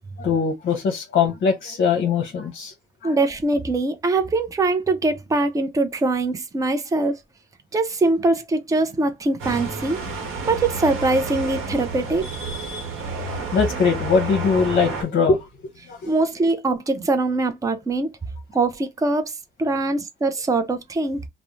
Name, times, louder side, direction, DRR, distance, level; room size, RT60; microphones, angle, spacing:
voice 1, 0.2-2.7 3.0-3.1 13.5-15.5 15.9-16.1, left 5 dB, 55° left, 0.7 m, -21 dB
voice 2, 3.0-7.2 7.7-10.0 10.4-12.3 16.0-18.1 18.5-19.3 19.6-21.2, right 2 dB, 15° right, 0.5 m, -22 dB
sound 1, 9.4-15.0, right 3 dB, 90° right, 1.0 m, -30 dB
2.4 x 2.0 x 3.0 m
cardioid pair, 90°, 20 cm